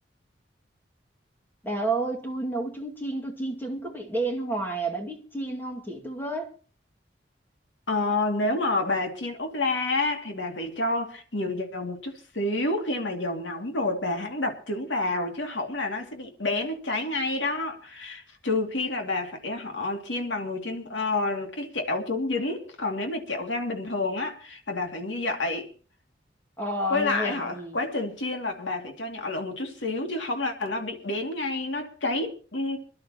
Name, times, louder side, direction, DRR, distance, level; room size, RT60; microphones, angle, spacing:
voice 1, 1.6-6.5 26.6-27.8, right 2 dB, 10° left, 2.2 m, -30 dB
voice 2, 7.9-25.7 26.9-32.8, left 2 dB, 85° left, 2.5 m, -29 dB
26.5 x 11.5 x 3.0 m
head